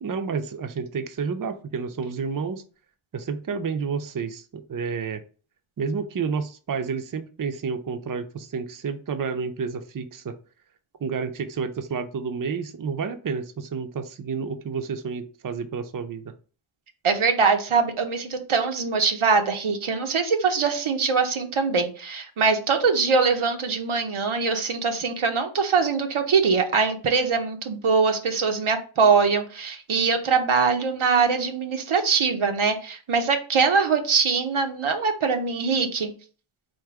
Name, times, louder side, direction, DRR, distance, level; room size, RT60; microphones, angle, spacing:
voice 1, 0.0-2.6 3.1-5.2 5.8-10.3 11.0-16.3, right 5 dB, 45° right, 8 dB, 0.5 m, -30 dB
voice 2, 17.0-36.1, right 5 dB, 90° right, 4 dB, 0.8 m, -22 dB
3.6 x 2.6 x 4.6 m, 0.38 s
wide cardioid pair, 50°, 48 cm